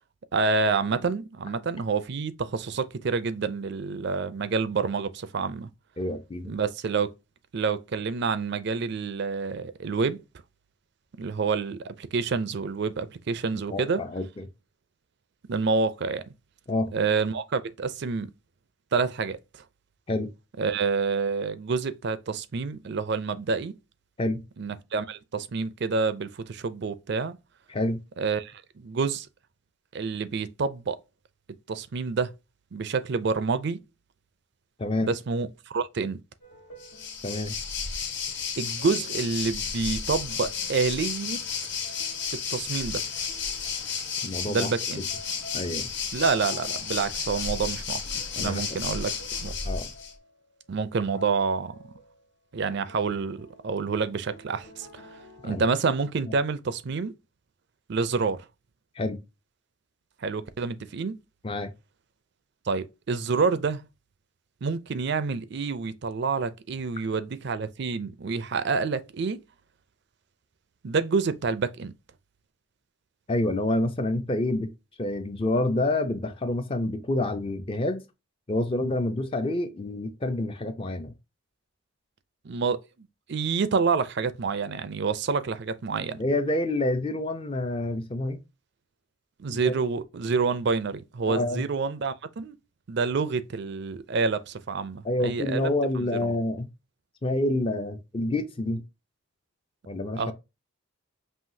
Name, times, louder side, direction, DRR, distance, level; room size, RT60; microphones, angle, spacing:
voice 1, 0.3-5.7 6.4-7.1 7.5-10.2 11.2-14.0 15.5-16.2 16.9-18.3 18.9-19.6 20.6-23.7 24.6-27.4 28.2-29.3 29.9-31.0 31.7-32.3 32.7-33.8 35.0-36.2 38.6-41.4 42.5-43.0 44.5-45.1 46.1-48.0 48.4-49.1 49.4-49.5 50.7-51.8 52.5-55.0 55.4-57.1 57.9-58.5 60.2-61.2 62.7-63.8 64.6-69.4 70.8-71.9 82.4-82.8 83.3-86.2 89.4-92.5 92.9-95.7 96.0-96.3 100.2-100.3, right 4 dB, 50° right, 0.4 m, -28 dB
voice 2, 6.0-6.6 13.7-14.5 16.7-16.9 20.1-20.3 24.2-24.4 27.7-28.0 34.8-35.1 37.2-37.6 44.2-44.7 45.5-45.9 48.4-48.6 49.6-49.9 55.4-55.6 59.0-59.2 61.4-61.7 73.3-78.0 78.5-81.1 86.2-88.4 89.5-89.7 91.3-91.6 95.0-96.7 97.2-98.8 99.9-100.2, left 1 dB, 25° left, 0.4 m, -28 dB
sound 1, 36.4-37.8 38.6-44.4 44.9-52.3 52.7-55.9, left 1 dB, 90° left, 1.7 m, -51 dB
Waves surf, 36.8-50.1, left 6 dB, 55° left, 1.2 m, -32 dB
5.6 x 2.7 x 2.6 m
head